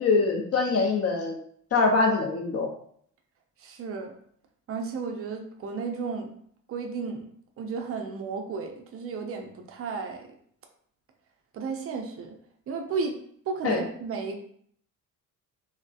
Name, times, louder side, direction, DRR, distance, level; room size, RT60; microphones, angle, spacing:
voice 1, 0.0-1.4 1.7-2.7 13.6-13.8, left 3 dB, 30° left, 3 dB, 0.6 m, -23 dB
voice 2, 3.6-4.1 4.7-6.3 6.7-7.3 7.6-10.2 11.5-12.4 12.7-13.2 13.5-14.4, right 4 dB, 30° right, 4 dB, 0.5 m, -33 dB
3.2 x 2.0 x 2.4 m, 0.63 s
figure-of-eight pair, 50°, 50 cm